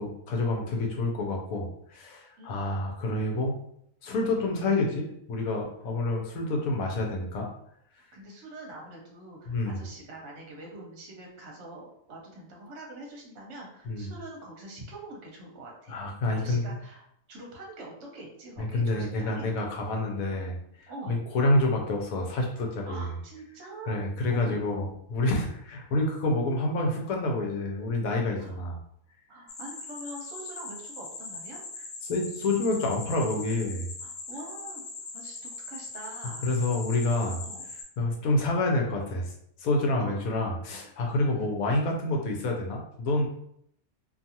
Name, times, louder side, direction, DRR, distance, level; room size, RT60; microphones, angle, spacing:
voice 1, 0.0-3.5 4.0-7.5 9.5-9.8 13.9-14.1 15.9-16.6 18.6-20.6 21.1-23.1 23.9-28.8 32.0-33.9 36.4-37.4 38.0-39.3 39.6-43.3, left 2 dB, 80° left, 1 dB, 1.1 m, -28 dB
voice 2, 8.0-16.0 16.3-19.5 20.9-21.2 22.9-24.0 24.3-24.7 28.4-28.5 29.3-31.6 34.0-34.8 35.1-36.5 37.4-37.7 40.0-40.9 41.3-41.5, right 1 dB, 60° right, -1 dB, 0.9 m, -44 dB
sound 1, 29.5-37.8, left 3 dB, 50° left, 0.5 m, -41 dB
2.6 x 2.4 x 2.7 m, 0.71 s
omnidirectional pair, 1.5 m